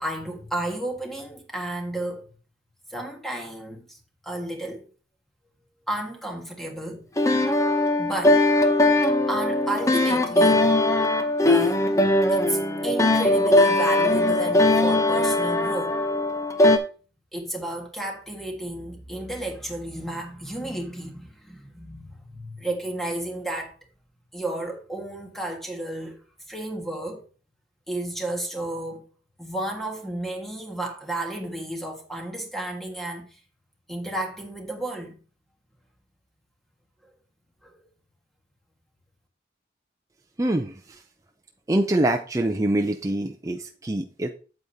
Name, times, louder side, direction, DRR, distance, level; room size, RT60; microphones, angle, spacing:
voice 1, 0.0-2.3 2.9-4.0 4.2-4.9 5.9-7.0 8.0-8.4 9.3-10.7 11.5-16.0 17.3-23.8 24.3-26.2 26.5-27.2 27.9-29.1 29.4-33.4 33.9-35.2 37.6-37.8, right 1 dB, ahead, 1.6 m, -32 dB
sound 1, 7.2-16.8, left 1 dB, 15° left, 0.7 m, -20 dB
voice 2, 40.4-41.0 41.7-44.3, right 1 dB, 20° right, 0.6 m, -25 dB
8.7 x 8.0 x 2.8 m
head